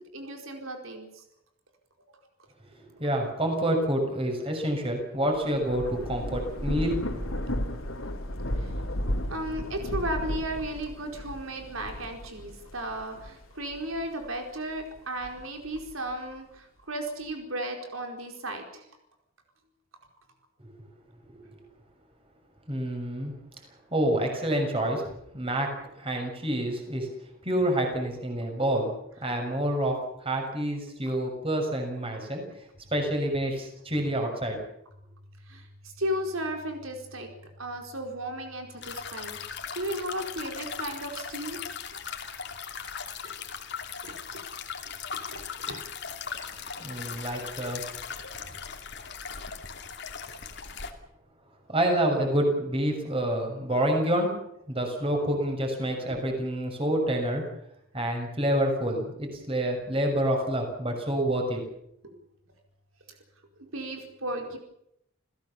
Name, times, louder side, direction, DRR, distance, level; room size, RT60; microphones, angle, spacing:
voice 1, 0.1-1.2 2.1-2.2 8.6-8.7 9.3-18.9 35.5-37.3 37.6-39.4 39.7-41.6 43.2-43.3 44.0-44.5 44.8-45.0 45.3-45.4 45.7-45.9 56.1-56.2 63.6-64.6, right 1 dB, 80° right, 4 dB, 4.6 m, -35 dB
voice 2, 3.0-7.2 20.6-20.7 21.5-21.6 22.7-23.3 23.9-27.1 27.4-28.9 29.2-32.7 32.9-34.6 46.8-47.8 51.7-54.3 54.7-57.4 57.9-61.6, right 1 dB, 25° right, 3 dB, 6.4 m, -28 dB
Thunder / Rain, 5.3-14.3 14.8-16.1, equal, 85° left, 3.7 m, -34 dB
sound 1, 38.8-50.9, left 6 dB, 55° left, 2.7 m, -38 dB
29.5 x 16.5 x 7.2 m, 0.77 s
head